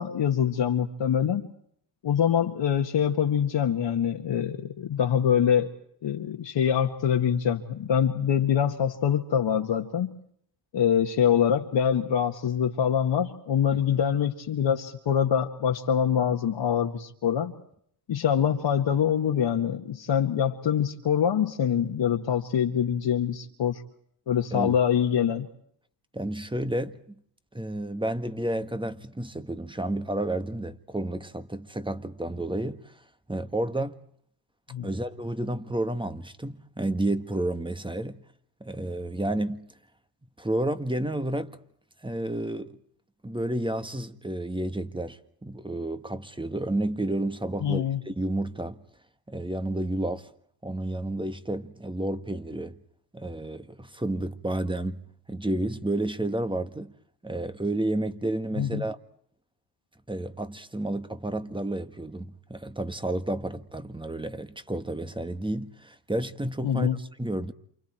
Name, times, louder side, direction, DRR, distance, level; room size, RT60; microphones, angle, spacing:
voice 1, 0.0-1.5 2.0-5.7 6.0-10.2 10.7-17.5 18.1-23.8 24.3-25.5 34.7-34.9 47.6-48.0 58.6-58.8 66.6-67.0, left 8 dB, 60° left, 2.0 m, -24 dB
voice 2, 13.7-14.0 24.5-24.7 26.1-27.0 27.5-32.9 33.3-34.0 34.8-38.2 38.6-39.7 40.4-41.6 42.0-42.8 43.2-48.8 49.3-50.3 50.6-52.8 53.1-56.9 57.2-59.0 60.1-67.5, right 1 dB, 10° right, 1.7 m, -31 dB
29.0 x 28.5 x 4.5 m
cardioid pair, 75°, 48 cm